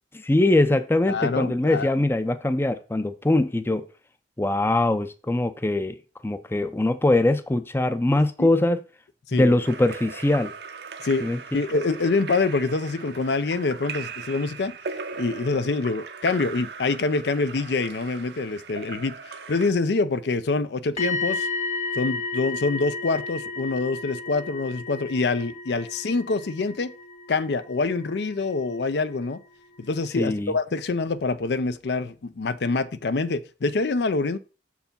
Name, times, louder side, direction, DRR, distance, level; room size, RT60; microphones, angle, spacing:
voice 1, 0.1-3.9 4.4-6.0 6.2-8.8 9.3-10.5 11.2-11.4 30.2-30.5, left 2 dB, 15° left, 0.5 m, -22 dB
voice 2, 1.1-1.9 8.4-8.5 9.3-9.6 11.0-11.3 11.5-14.8 15.2-21.5 21.9-26.9 27.3-29.4 29.8-34.4, left 3 dB, 70° left, 0.5 m, -25 dB
Splash splatter / Drip / Trickle dribble, 9.6-19.7, right 5 dB, 70° right, 0.8 m, -39 dB
sound 1, 21.0-28.8 29.1-29.4, left 3 dB, 40° left, 1.3 m, -33 dB
6.8 x 4.7 x 5.2 m
head